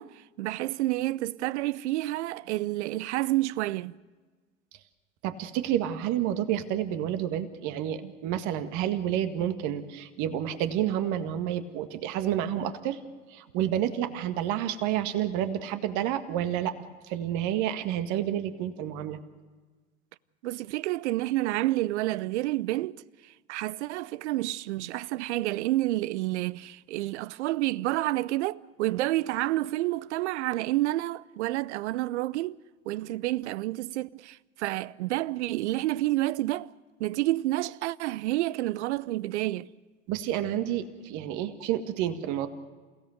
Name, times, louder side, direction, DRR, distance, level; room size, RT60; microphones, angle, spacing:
voice 1, 0.0-3.9 8.0-8.1 20.4-32.6 32.9-36.7 37.0-39.7, right 17 dB, 70° right, 0.6 m, -29 dB
voice 2, 5.2-13.0 13.3-16.7 17.1-19.2 40.1-42.5, right 11 dB, 50° right, 1.9 m, -29 dB
29.0 x 16.5 x 6.6 m
hypercardioid pair, 85°, 36 cm